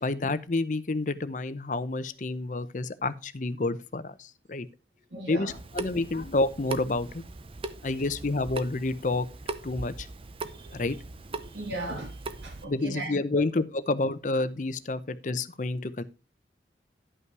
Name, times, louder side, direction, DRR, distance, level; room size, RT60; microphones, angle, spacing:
voice 1, 0.0-4.7 5.3-7.2 7.8-9.3 9.6-10.1 10.7-11.0 12.7-16.0, left 2 dB, 45° left, 0.6 m, -29 dB
voice 2, 5.1-5.6 10.5-10.9 11.4-13.4, right 1 dB, 80° right, 2.5 m, -38 dB
Water tap faucet / Sink (filling or washing) / Drip, 5.5-12.6, right 3 dB, 30° right, 0.6 m, -40 dB
11.0 x 5.6 x 4.7 m
head